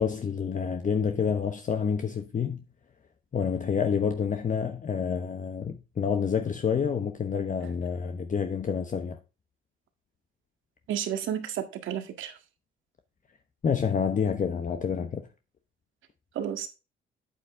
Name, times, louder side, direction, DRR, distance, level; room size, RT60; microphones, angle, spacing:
voice 1, 0.0-2.6 3.3-9.2 13.6-15.3, left 6 dB, 40° left, 1.0 m, -28 dB
voice 2, 10.9-12.3 16.4-16.7, right 9 dB, 80° right, 1.7 m, -31 dB
8.7 x 8.3 x 3.5 m
cardioid pair, 90°, 20 cm